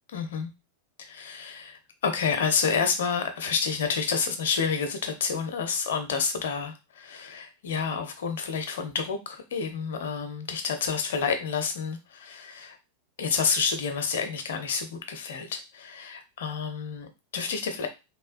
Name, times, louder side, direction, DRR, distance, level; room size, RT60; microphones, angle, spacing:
voice 1, 0.1-0.5 1.0-12.8 13.2-17.9, left 6 dB, 60° left, 6 dB, 0.5 m, -29 dB
2.9 x 2.2 x 2.5 m, 0.26 s
figure-of-eight pair, 90°, 0 cm